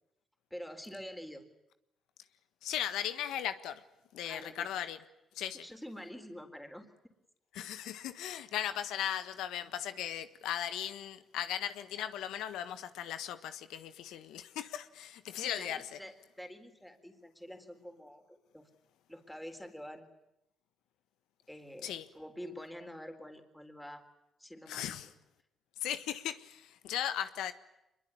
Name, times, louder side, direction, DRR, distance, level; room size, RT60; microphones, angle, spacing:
voice 1, 0.5-1.4 4.3-4.9 5.6-6.9 15.4-18.7 19.1-20.1 21.5-24.0 24.4-25.0, equal, 5° left, 5 dB, 3.9 m, -47 dB
voice 2, 2.6-3.8 4.1-5.0 5.3-5.6 7.5-16.0 21.8-22.0 24.7-25.1 25.8-27.5, left 10 dB, 90° left, 11 dB, 1.4 m, -37 dB
24.5 x 22.5 x 9.7 m, 0.89 s
cardioid pair, 90°, 0 cm